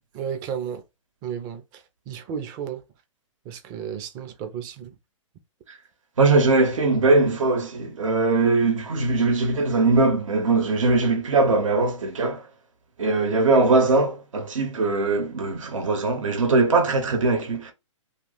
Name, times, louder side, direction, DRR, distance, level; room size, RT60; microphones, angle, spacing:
voice 1, 0.1-0.8 1.2-1.6 2.1-2.8 3.5-4.9, right 8 dB, 25° right, 0.5 m, -32 dB
voice 2, 6.2-12.4 13.0-17.7, right 3 dB, 75° right, 1.0 m, -21 dB
2.6 x 2.4 x 3.9 m
hypercardioid pair, 135°, 17 cm